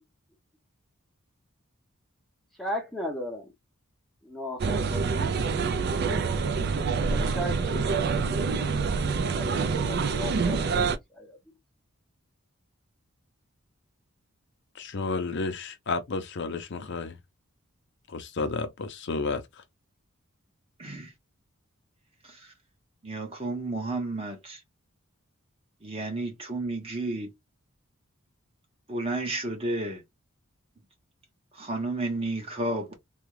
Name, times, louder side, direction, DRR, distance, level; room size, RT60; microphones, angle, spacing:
voice 1, 2.6-3.5 4.2-5.3 7.1-8.8 9.3-10.8 11.1-11.4, equal, ahead, 0.7 m, -36 dB
sound 1, 4.6-11.0, right 5 dB, 50° right, 0.4 m, -26 dB
voice 2, 14.8-17.2 18.1-19.4, left 3 dB, 55° left, 0.5 m, -31 dB
voice 3, 20.8-21.1 22.2-22.5 23.0-24.6 25.8-27.3 28.9-30.0 31.5-33.0, right 2 dB, 25° right, 1.2 m, -32 dB
3.5 x 2.3 x 3.2 m
head